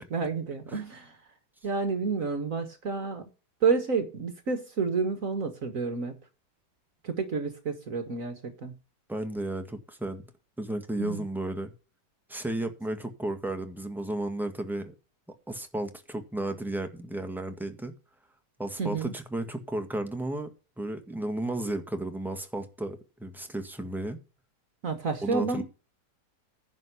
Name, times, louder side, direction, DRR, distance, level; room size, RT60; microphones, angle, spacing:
voice 1, 0.1-1.2 1.6-3.2 3.6-6.1 7.0-8.7 11.0-11.2 18.8-19.1 24.8-25.6, right 5 dB, 55° right, 1.7 m, -29 dB
voice 2, 9.1-10.3 10.6-11.7 12.3-14.9 15.5-17.9 18.6-24.2 25.2-25.6, right 1 dB, ahead, 1.5 m, -33 dB
10.5 x 5.3 x 8.2 m
omnidirectional pair, 1.8 m